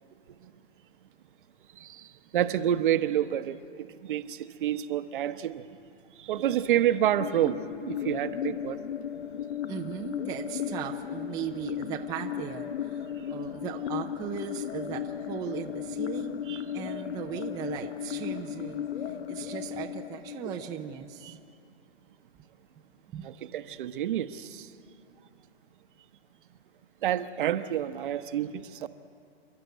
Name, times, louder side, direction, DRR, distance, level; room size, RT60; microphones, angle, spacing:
voice 1, 2.3-5.6 6.2-8.8 16.5-16.6 21.2-21.3 23.2-24.7 27.0-28.9, right 11 dB, 50° right, 10 dB, 1.0 m, -29 dB
sound 1, 6.4-21.3, left 9 dB, 70° left, 0.9 m, -36 dB
voice 2, 9.7-16.4 16.7-21.4 23.1-23.3, right 9 dB, 10° right, 3 dB, 0.6 m, -38 dB
29.0 x 12.0 x 9.3 m, 2.5 s
hypercardioid pair, 150°, 32 cm